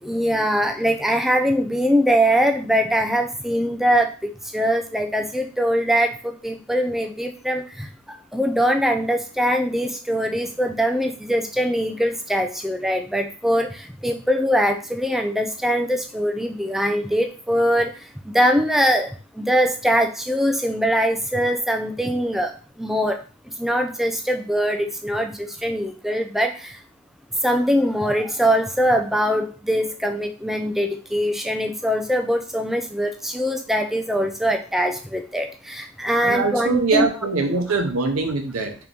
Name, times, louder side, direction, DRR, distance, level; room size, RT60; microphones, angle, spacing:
voice 1, 0.0-23.2 23.6-26.8 27.4-37.1, equal, ahead, 5 dB, 0.3 m, -22 dB
voice 2, 36.2-38.8, right 4 dB, 75° right, 4 dB, 0.6 m, -23 dB
3.7 x 2.9 x 3.5 m, 0.38 s
head